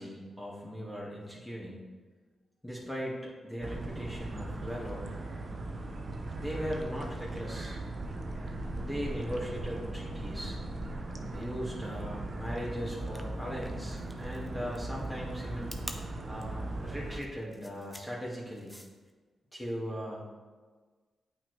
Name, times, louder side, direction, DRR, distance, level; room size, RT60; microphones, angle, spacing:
voice 1, 0.0-1.8 2.6-5.1 6.4-7.8 8.8-10.6 11.3-15.7 16.3-18.7 19.5-20.3, equal, 10° left, -6 dB, 1.9 m, -39 dB
sound 1, 3.6-17.2, right 2 dB, 45° right, 0.8 m, -38 dB
sound 2, 13.0-19.1, equal, 5° right, 0.8 m, -48 dB
8.5 x 4.6 x 3.3 m, 1.4 s
supercardioid pair, 40°, 0 cm